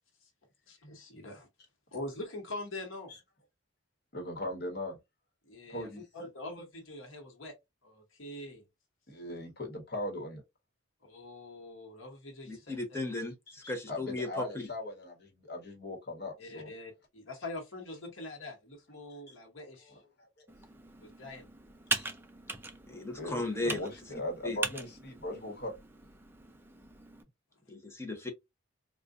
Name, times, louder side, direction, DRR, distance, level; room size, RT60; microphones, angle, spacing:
voice 1, 0.7-1.5 1.9-3.1 5.5-5.9 6.1-7.5 7.8-8.6 11.0-13.0 16.4-19.9 21.0-21.5, left 2 dB, 80° left, 1.2 m, -44 dB
voice 2, 4.1-5.0 5.7-6.1 9.1-10.4 13.5-16.7 19.3-19.4 19.8-20.4 21.9-22.0 23.1-25.7, left 1 dB, 50° left, 1.2 m, -39 dB
voice 3, 12.5-14.4 22.9-23.8 24.4-24.6 27.7-28.3, left 2 dB, 15° left, 0.8 m, -36 dB
Computer keyboard, 20.5-27.2, right 3 dB, 10° right, 0.3 m, -40 dB
3.7 x 2.4 x 2.5 m
head